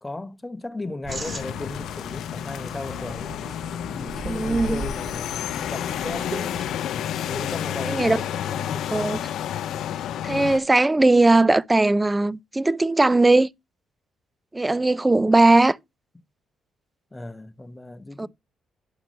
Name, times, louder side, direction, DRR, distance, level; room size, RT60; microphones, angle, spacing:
voice 1, 0.0-3.3 3.9-6.4 7.3-9.1 17.1-18.3, left 2 dB, 15° left, 1.1 m, -36 dB
sound 1, 1.0-6.7, right 3 dB, 35° right, 2.1 m, -38 dB
sound 2, 1.1-10.6, left 10 dB, 75° left, 0.6 m, -30 dB
voice 2, 4.3-4.8 7.9-8.2 8.9-9.2 10.2-13.5 14.5-15.8 18.2-18.3, right 2 dB, 15° right, 0.4 m, -19 dB
10.5 x 5.8 x 3.0 m
cardioid pair, 90°, 0 cm